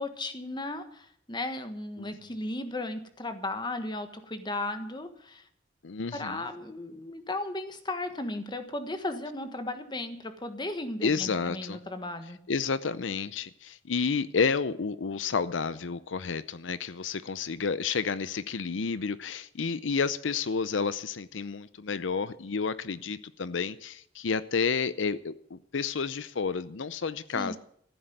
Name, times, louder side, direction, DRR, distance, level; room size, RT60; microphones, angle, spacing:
voice 1, 0.0-5.4 6.1-12.4 27.3-27.6, left 2 dB, 25° left, 8 dB, 1.4 m, -35 dB
voice 2, 5.8-6.4 11.0-11.8 12.5-27.6, left 5 dB, 90° left, 15 dB, 0.7 m, -30 dB
14.5 x 7.9 x 9.2 m, 0.65 s
head